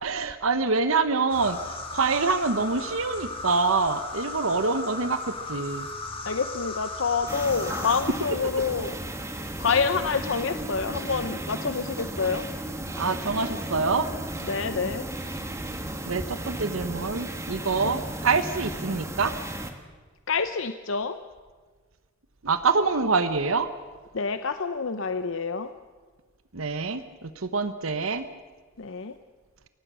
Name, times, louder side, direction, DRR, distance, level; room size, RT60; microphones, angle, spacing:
voice 1, 0.0-5.9 13.0-14.1 16.1-19.3 22.4-23.7 26.5-28.3, right 4 dB, 75° right, 11 dB, 1.0 m, -26 dB
sound 1, 1.3-8.0, left 2 dB, 25° left, 2.3 m, -36 dB
voice 2, 6.3-9.0 9.6-12.5 14.4-15.1 17.8-18.0 20.3-21.2 24.1-25.7 28.8-29.1, left 5 dB, 65° left, 9 dB, 0.8 m, -27 dB
sound 2, 7.3-19.7, right 1 dB, 15° right, 1.6 m, -35 dB
28.5 x 16.0 x 6.3 m, 1.5 s
head